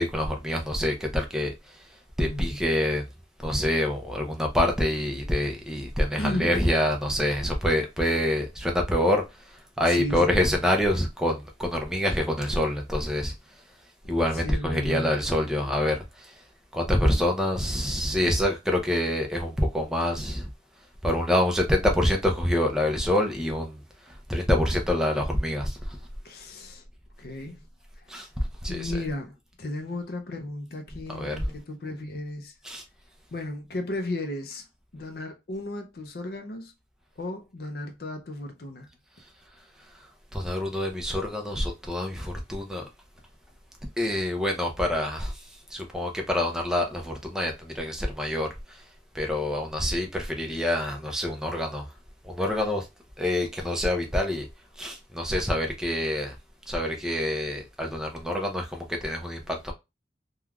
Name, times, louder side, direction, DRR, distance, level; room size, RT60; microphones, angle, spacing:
voice 1, 0.0-1.5 2.2-3.0 3.4-13.3 14.1-16.3 16.7-20.5 21.0-23.8 24.1-26.0 28.1-28.3 28.6-29.0 31.1-31.6 32.6-32.8 40.3-42.9 44.0-45.4 45.7-48.8 49.1-51.9 52.2-52.9 53.2-54.5 54.8-56.4 56.7-59.7, left 1 dB, 5° right, 0.5 m, -26 dB
voice 2, 6.2-6.6 9.9-10.5 14.3-15.1 26.2-26.8 27.2-27.6 28.0-28.1 28.7-29.3 29.6-32.5 33.3-34.6 34.9-36.7 37.2-38.9, left 1 dB, 55° left, 0.5 m, -34 dB
3.2 x 2.3 x 2.3 m
head